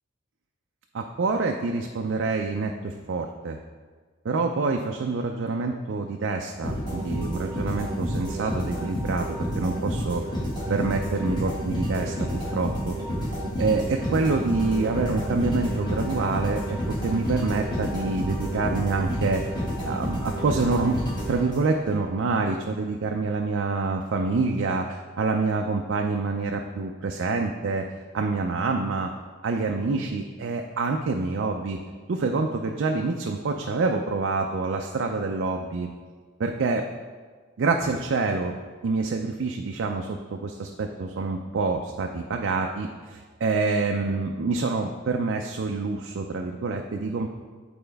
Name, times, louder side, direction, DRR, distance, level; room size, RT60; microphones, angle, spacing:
voice 1, 0.9-3.6 4.2-10.2 10.7-13.0 13.6-19.4 19.8-21.0 21.3-27.9 28.1-29.1 29.4-31.8 32.1-35.9 36.4-36.9 37.6-38.5 38.8-47.3, right 3 dB, 55° right, 3 dB, 0.4 m, -27 dB
sound 1, 6.6-21.9, equal, 20° left, 1.6 m, -29 dB
8.9 x 4.3 x 3.4 m, 1.5 s
head